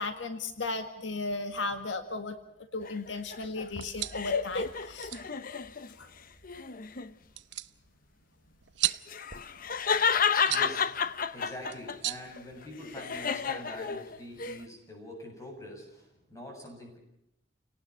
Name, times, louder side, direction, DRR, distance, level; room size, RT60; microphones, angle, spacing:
voice 1, 0.0-2.4 2.7-5.1 6.0-6.1, left 3 dB, 80° left, 7 dB, 1.9 m, -35 dB
sound 1, 2.8-5.9 6.4-7.1 8.8-12.0 12.4-14.6, left 6 dB, 50° left, 0.9 m, -31 dB
sound 2, 3.7-13.1, right 14 dB, 70° right, 0.8 m, -39 dB
voice 2, 10.1-17.0, left 1 dB, 20° left, 2 dB, 8.0 m, -45 dB
30.0 x 18.5 x 5.7 m, 0.83 s
head